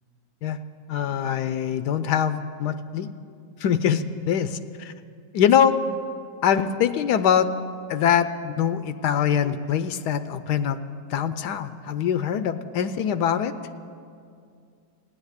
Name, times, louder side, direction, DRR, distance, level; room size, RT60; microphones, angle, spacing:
voice 1, 0.9-3.1 3.6-4.9 5.3-5.8 6.4-7.5 7.9-10.8 11.1-13.6, left 8 dB, 75° left, 12 dB, 1.1 m, -23 dB
15.0 x 10.0 x 8.2 m, 2.3 s
omnidirectional pair, 1.9 m